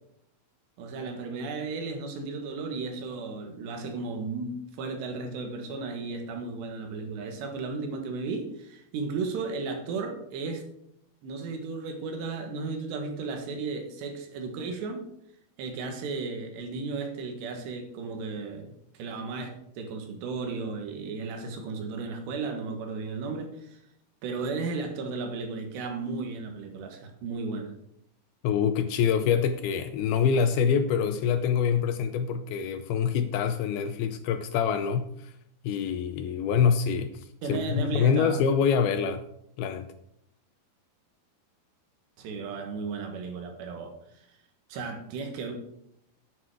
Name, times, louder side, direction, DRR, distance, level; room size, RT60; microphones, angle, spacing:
voice 1, 0.8-10.6 11.2-15.1 15.6-23.8 24.2-27.7 37.4-38.4 42.2-44.0 44.7-45.6, right 4 dB, 85° right, 3.7 m, -34 dB
voice 2, 28.4-35.3 35.6-39.2 39.6-39.9, left 7 dB, 80° left, 2.3 m, -25 dB
10.0 x 9.1 x 4.8 m
omnidirectional pair, 4.8 m